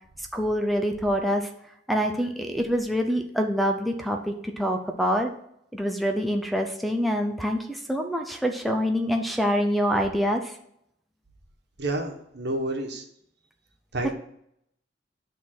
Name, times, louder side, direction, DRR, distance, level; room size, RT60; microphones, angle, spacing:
voice 1, 0.3-1.5 1.9-5.3 5.7-10.5, equal, ahead, 4 dB, 0.6 m, -25 dB
voice 2, 11.8-13.0 13.9-14.1, right 1 dB, 65° right, 3 dB, 1.3 m, -29 dB
9.8 x 3.7 x 6.1 m, 0.72 s
head